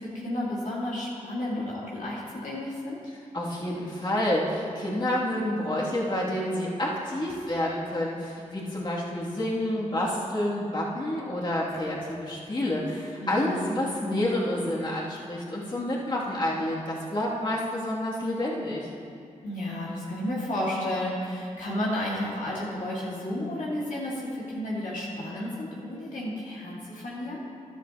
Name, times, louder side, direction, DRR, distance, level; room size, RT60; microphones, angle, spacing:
voice 1, 0.0-3.0 13.2-13.8 19.4-27.4, left 1 dB, 70° left, -6 dB, 2.2 m, -32 dB
voice 2, 3.3-18.9, left 1 dB, 35° left, -6 dB, 2.7 m, -29 dB
13.5 x 12.0 x 3.0 m, 2.4 s
cardioid pair, 65°, 14 cm